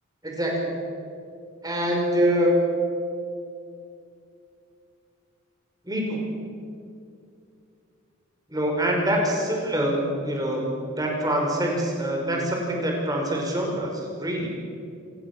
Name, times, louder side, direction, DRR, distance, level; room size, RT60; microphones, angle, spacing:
voice 1, 0.2-0.6 1.6-2.8 5.8-6.2 8.5-10.0 10.2-10.6 11.0-14.5, equal, 20° right, 0 dB, 5.3 m, -24 dB
27.0 x 19.0 x 7.4 m, 2.5 s
head